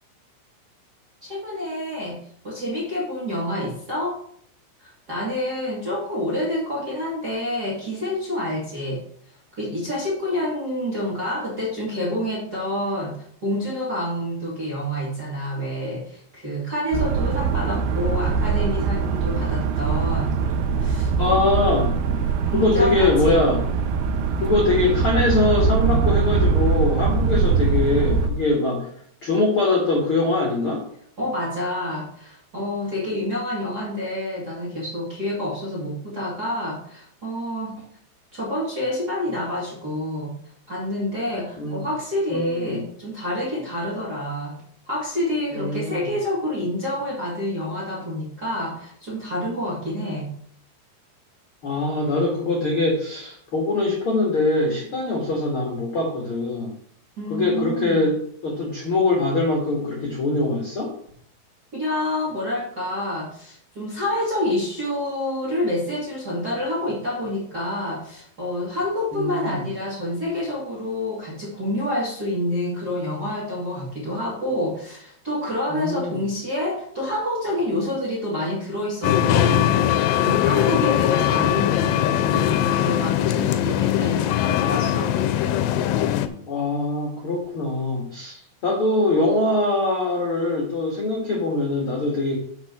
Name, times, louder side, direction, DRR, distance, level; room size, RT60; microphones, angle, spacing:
voice 1, 1.2-2.2 2.4-4.2 4.8-9.0 9.5-20.3 20.8-21.1 22.5-23.4 31.2-37.7 38.3-40.3 40.7-44.6 44.9-50.3 57.2-58.0 61.7-85.1, left 1 dB, 35° right, -5 dB, 1.7 m, -28 dB
sound 1, 16.9-28.3, right 5 dB, 75° right, 2.4 m, -22 dB
voice 2, 21.2-21.9 22.5-23.6 24.4-28.9 29.2-30.8 41.6-41.8 42.3-42.8 45.5-46.1 51.6-56.7 57.3-58.2 58.4-60.9 69.1-69.6 75.7-76.2 86.5-92.4, left 2 dB, 55° left, -2 dB, 1.6 m, -23 dB
sound 2, 79.0-86.3, left 12 dB, 85° left, 2.7 m, -21 dB
6.7 x 6.4 x 5.9 m, 0.63 s
omnidirectional pair, 4.9 m